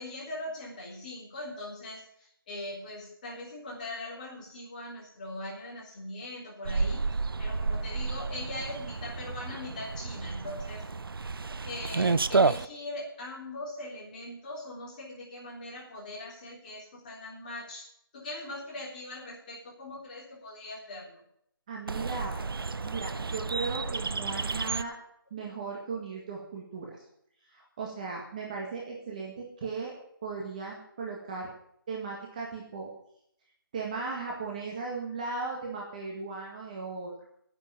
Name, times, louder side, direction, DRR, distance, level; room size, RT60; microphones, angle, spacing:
voice 1, 0.0-7.0 7.4-10.8 11.6-17.9 18.1-21.2, left 1 dB, 20° left, -3 dB, 3.6 m, -41 dB
sound 1, 6.6-12.7 21.9-24.8, right 4 dB, 70° right, 0.7 m, -31 dB
voice 2, 21.7-22.3 22.8-24.9 25.3-27.0 27.5-29.9 30.2-31.5 31.9-32.9 33.7-37.1, right 4 dB, 20° right, -2 dB, 1.7 m, -37 dB
9.9 x 8.7 x 9.2 m, 0.71 s
figure-of-eight pair, 170°, 12 cm